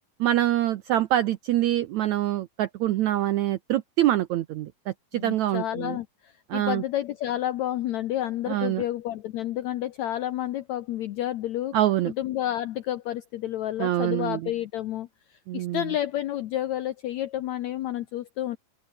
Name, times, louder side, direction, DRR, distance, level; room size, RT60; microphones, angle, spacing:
voice 1, 0.2-4.7 5.2-6.0 6.5-6.8 8.5-8.8 11.7-12.1 13.8-14.4 15.5-15.8, right 13 dB, 80° right, 1.6 m, -25 dB
voice 2, 5.1-11.8 12.1-18.6, left 12 dB, 80° left, 1.6 m, -30 dB
open air
omnidirectional pair, 4.2 m